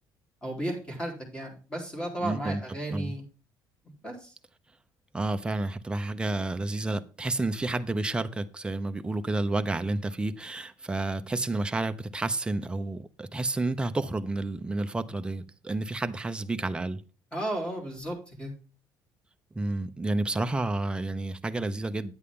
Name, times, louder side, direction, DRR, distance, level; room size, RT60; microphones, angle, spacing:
voice 1, 0.4-3.2 4.0-4.3 17.3-18.5, right 1 dB, 10° left, 3.6 m, -34 dB
voice 2, 2.2-2.6 2.9-3.1 5.1-17.0 19.5-22.1, right 2 dB, 10° right, 0.7 m, -30 dB
9.8 x 8.2 x 3.7 m
cardioid pair, 115°, 8 cm